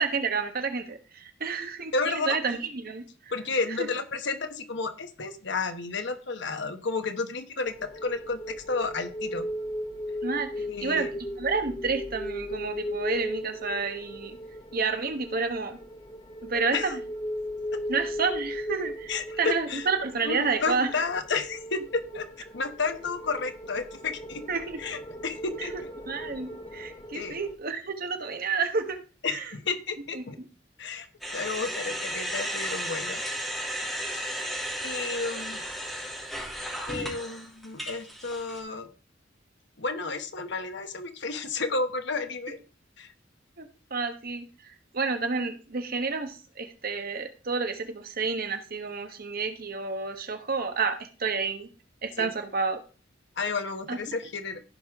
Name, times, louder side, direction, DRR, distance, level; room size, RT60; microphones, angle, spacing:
voice 1, 0.0-3.0 3.8-3.9 10.2-10.5 10.8-11.1 11.4-14.4 14.7-15.8 16.4-17.0 17.9-19.1 19.4-20.9 24.5-24.8 25.7-25.8 26.1-29.5 30.1-30.2 43.6-44.5 44.9-51.7 52.0-52.8 53.9-54.0, right 4 dB, 50° right, 7 dB, 1.2 m, -30 dB
voice 2, 1.9-2.4 3.3-7.7 8.0-9.4 10.6-11.1 16.7-16.9 17.7-17.8 19.1-19.9 20.2-22.3 22.5-24.4 24.8-25.7 27.1-27.4 29.2-30.4 30.8-31.1 31.3-33.2 34.1-34.3 34.8-35.6 36.9-38.9 39.8-42.6 43.0-43.1 52.2-52.3 53.4-54.6, left 4 dB, 65° left, 8 dB, 1.1 m, -31 dB
sound 1, 7.6-27.6, left 1 dB, 25° left, 0.9 m, -37 dB
sound 2, 31.2-38.6, equal, ahead, 2.8 m, -34 dB
15.0 x 5.1 x 3.6 m, 0.35 s
head